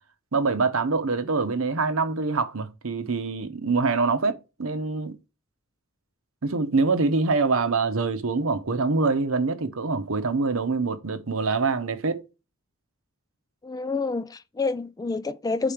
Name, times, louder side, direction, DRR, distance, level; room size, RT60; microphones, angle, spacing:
voice 1, 0.3-5.1 6.4-12.2, right 4 dB, 75° right, 0.9 m, -25 dB
voice 2, 13.6-15.7, left 3 dB, 20° left, 0.3 m, -28 dB
5.0 x 4.0 x 5.8 m
head